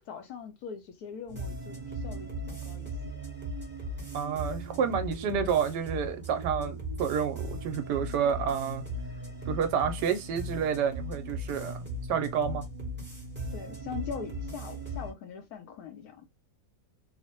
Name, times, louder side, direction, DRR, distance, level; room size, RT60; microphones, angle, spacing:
voice 1, 0.0-1.8 2.0-2.9 5.3-5.4 13.5-16.3, left 7 dB, 70° left, 1.0 m, -41 dB
sound 1, 1.3-15.1, right 1 dB, 10° right, 0.8 m, -38 dB
voice 2, 4.1-8.8 9.5-11.8 12.1-12.7, right 7 dB, 75° right, 1.2 m, -29 dB
3.1 x 2.0 x 2.9 m
omnidirectional pair, 1.9 m